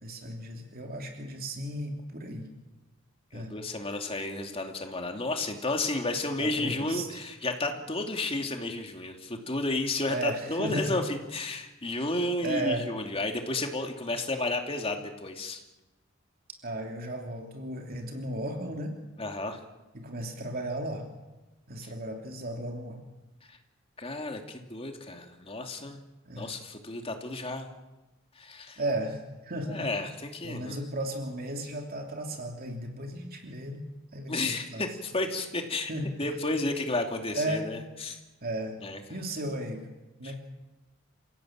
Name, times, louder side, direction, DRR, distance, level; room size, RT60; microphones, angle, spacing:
voice 1, 0.0-2.4 3.3-3.5 6.4-7.2 10.1-11.0 12.4-12.9 16.6-19.0 19.9-21.1 21.7-23.0 26.2-26.5 28.8-29.9 30.4-34.9 35.9-36.3 37.3-37.7 38.4-38.8 39.1-39.8 40.2-40.4, right 1 dB, 45° right, 2 dB, 3.0 m, -35 dB
voice 2, 3.3-15.6 19.2-19.6 21.8-21.9 23.5-23.6 24.0-26.0 26.4-27.7 28.4-28.8 29.7-30.8 34.3-35.9 36.2-38.2 38.8-39.0 40.2-40.3, left 2 dB, 30° left, 4 dB, 2.8 m, -32 dB
28.5 x 16.5 x 9.0 m, 1.1 s
head